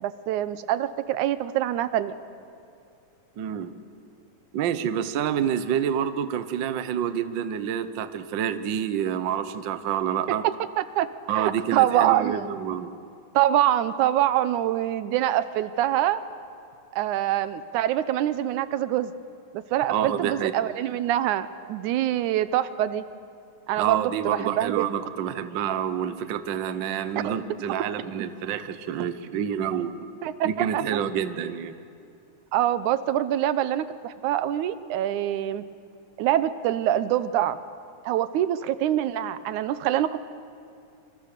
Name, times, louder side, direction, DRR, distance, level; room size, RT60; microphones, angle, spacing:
voice 1, 0.0-2.2 10.3-11.1 11.3-12.5 13.4-16.2 16.9-19.1 19.5-23.1 23.7-24.9 27.2-27.4 29.0-29.1 30.2-30.8 32.5-35.6 36.2-37.6 38.1-40.2, right 12 dB, 85° right, 14 dB, 2.2 m, -25 dB
voice 2, 3.4-3.7 4.5-10.4 11.3-12.9 19.9-20.5 23.8-29.9 30.4-31.7, right 9 dB, 70° right, 11 dB, 1.1 m, -28 dB
26.5 x 26.0 x 6.7 m, 2.5 s
omnidirectional pair, 3.4 m